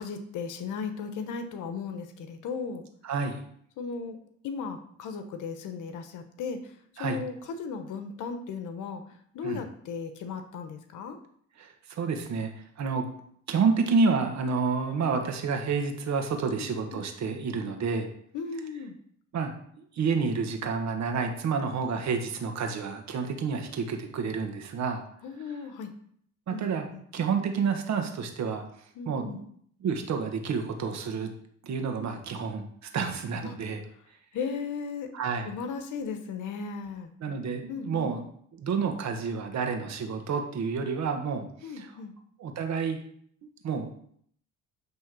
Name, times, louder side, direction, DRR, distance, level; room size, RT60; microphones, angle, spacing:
voice 1, 0.0-2.8 3.8-4.2 4.4-6.7 7.0-9.0 9.3-11.2 16.5-17.0 18.3-18.9 25.2-25.9 26.5-26.6 26.9-27.0 29.0-29.4 33.4-33.5 34.3-35.1 35.4-37.1 37.7-38.1 41.6-42.1, left 5 dB, 85° left, 7 dB, 1.0 m, -36 dB
voice 2, 3.0-3.4 7.0-7.2 9.4-9.6 11.6-13.1 13.5-18.1 19.3-19.5 19.9-25.0 25.5-25.6 26.5-26.9 27.1-28.6 29.0-29.5 29.8-31.3 31.6-33.8 35.1-35.5 37.2-38.2 38.5-42.0 42.4-43.0 43.4-43.9, right 5 dB, 65° right, 4 dB, 1.5 m, -29 dB
9.7 x 3.5 x 6.2 m, 0.65 s
cardioid pair, 90°, 30 cm